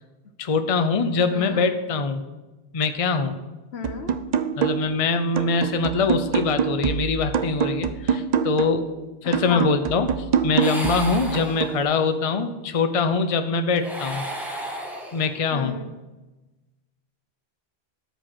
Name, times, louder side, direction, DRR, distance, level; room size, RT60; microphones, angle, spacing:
voice 1, 0.4-2.2 2.7-3.4 4.6-8.9 9.2-14.2 15.1-15.8, left 4 dB, 40° left, 8 dB, 0.7 m, -23 dB
voice 2, 1.3-1.6 3.7-4.2 9.2-9.7 15.5-15.9, left 5 dB, 75° left, 7 dB, 1.3 m, -34 dB
sound 1, 3.8-5.0 5.4-8.9 9.3-11.8, right 7 dB, 50° right, 0.6 m, -25 dB
sound 2, 10.6-12.1 13.7-15.5, right 1 dB, ahead, 1.6 m, -34 dB
12.5 x 5.2 x 6.2 m, 1.1 s
omnidirectional pair, 1.1 m